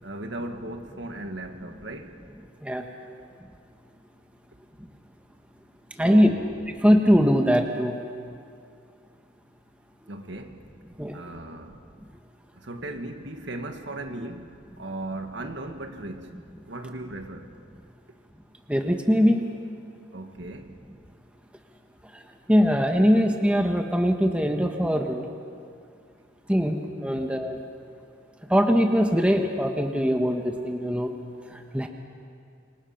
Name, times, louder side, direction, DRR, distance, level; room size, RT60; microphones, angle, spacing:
voice 1, 0.0-2.2 6.0-6.5 10.1-10.7 11.1-11.8 12.5-14.5 14.8-16.4 16.7-17.5 20.1-20.8, right 1 dB, 70° right, 1.8 m, -37 dB
voice 2, 6.0-6.3 6.8-7.9 11.0-11.1 18.7-19.4 22.5-25.2 26.5-27.6 28.5-31.1 31.7-31.9, equal, 5° right, 1.3 m, -21 dB
27.5 x 24.0 x 5.9 m
head